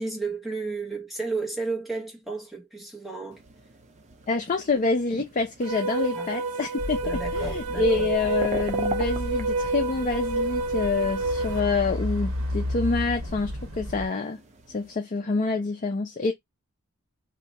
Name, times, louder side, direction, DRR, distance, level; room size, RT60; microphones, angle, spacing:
voice 1, 0.0-3.4 6.1-6.3 7.0-8.1, right 3 dB, ahead, 1.0 m, -33 dB
sound 1, 3.3-15.0, right 3 dB, 30° right, 0.5 m, -42 dB
voice 2, 4.3-14.4 14.7-16.3, left 4 dB, 35° left, 0.5 m, -27 dB
sound 2, 5.6-11.6, right 2 dB, 90° right, 0.4 m, -29 dB
sound 3, 6.8-14.1, left 1 dB, 65° right, 1.0 m, -33 dB
2.9 x 2.2 x 4.0 m
head